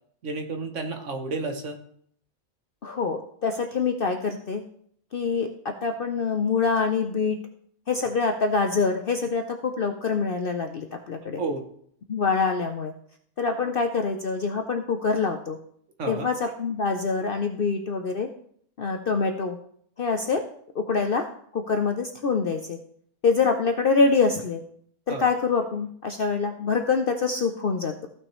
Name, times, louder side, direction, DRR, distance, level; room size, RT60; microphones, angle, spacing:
voice 1, 0.2-1.8 11.4-11.6 16.0-16.3 25.1-25.3, right 3 dB, 60° right, 6 dB, 1.3 m, -31 dB
voice 2, 2.8-4.6 5.1-7.4 7.9-11.4 12.1-12.9 13.4-15.6 16.1-18.3 18.8-19.6 20.0-20.4 20.8-21.3 21.5-22.8 23.2-24.6 25.1-28.1, left 4 dB, 55° left, 5 dB, 0.6 m, -25 dB
15.0 x 6.0 x 3.1 m, 0.64 s
omnidirectional pair, 1.5 m